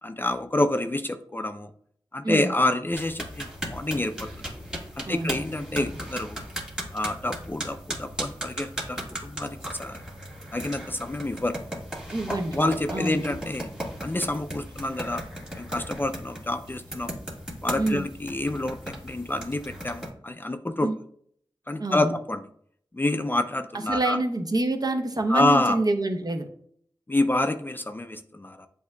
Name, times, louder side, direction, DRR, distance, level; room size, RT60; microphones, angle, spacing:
voice 1, 0.0-1.7 2.1-4.3 5.0-6.4 6.9-10.0 10.5-11.6 12.3-13.7 14.0-15.2 15.6-17.2 17.6-20.9 21.7-22.4 22.9-24.2 25.3-25.8 27.1-28.7, left 1 dB, 25° left, 8 dB, 0.3 m, -28 dB
voice 2, 2.2-2.5 5.0-5.4 12.1-13.2 17.8-18.0 20.8-21.0 21.8-22.1 23.9-26.5, right 2 dB, 45° right, 4 dB, 0.8 m, -27 dB
sound 1, 2.9-20.1, equal, 5° right, 1.9 m, -37 dB
8.0 x 2.7 x 2.2 m, 0.63 s
cardioid pair, 45°, 9 cm